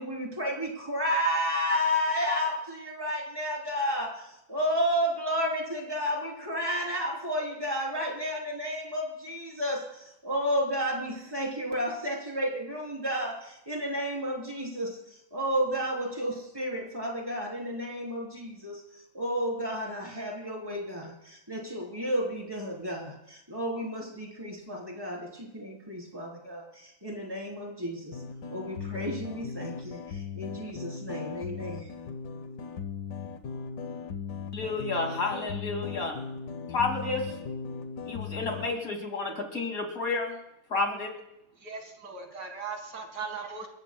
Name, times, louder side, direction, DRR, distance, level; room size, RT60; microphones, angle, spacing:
voice 1, 0.0-4.1 4.5-9.8 10.2-15.0 15.3-18.8 19.1-28.2 28.5-31.9, equal, 15° right, -2 dB, 3.9 m, -31 dB
sound 1, 28.1-38.7, left 6 dB, 80° left, 1.5 m, -38 dB
voice 2, 34.5-36.2 36.7-37.2 38.1-40.3 40.7-41.1, left 3 dB, 55° left, 2 dB, 3.0 m, -30 dB
voice 3, 41.6-43.7, right 5 dB, 75° right, 3 dB, 2.6 m, -38 dB
29.0 x 14.5 x 2.3 m, 0.83 s
omnidirectional pair, 1.8 m